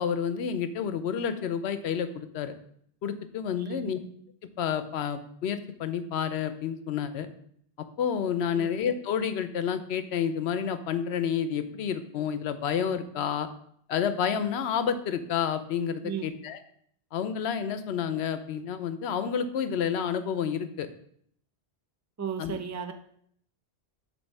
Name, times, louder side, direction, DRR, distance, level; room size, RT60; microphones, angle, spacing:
voice 1, 0.0-2.5 3.0-4.0 4.6-7.3 8.0-13.5 13.9-16.6 17.1-20.9 22.4-22.6, left 7 dB, 75° left, 11 dB, 0.9 m, -29 dB
voice 2, 22.2-22.9, right 7 dB, 30° right, 6 dB, 0.3 m, -34 dB
7.8 x 3.1 x 5.4 m, 0.66 s
omnidirectional pair, 1.1 m